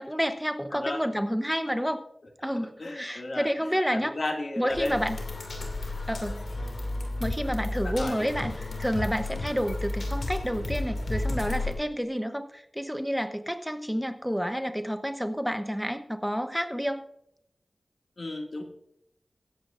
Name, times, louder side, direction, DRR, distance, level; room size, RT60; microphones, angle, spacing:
voice 1, 0.0-2.0 2.4-4.1 4.6-5.2 6.1-6.4 7.2-17.0, equal, ahead, 7 dB, 0.9 m, -29 dB
voice 2, 2.8-5.0 7.8-8.3 18.2-18.6, left 2 dB, 60° left, 2 dB, 2.2 m, -34 dB
sound 1, 4.7-11.7, left 2 dB, 80° left, 2.4 m, -32 dB
24.0 x 8.0 x 2.6 m, 0.76 s
cardioid pair, 45°, 0 cm